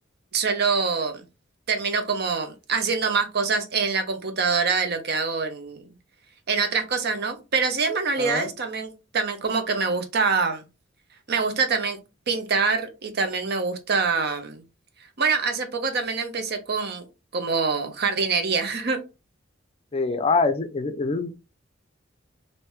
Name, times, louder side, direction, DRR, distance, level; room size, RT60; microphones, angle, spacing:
voice 1, 0.3-1.2 1.7-5.8 6.5-10.6 11.3-12.0 12.3-14.6 15.2-17.1 17.3-19.0, right 5 dB, 55° right, 0.7 m, -25 dB
voice 2, 8.2-8.5 19.9-21.3, left 3 dB, 30° left, 0.4 m, -24 dB
3.3 x 2.7 x 3.1 m
head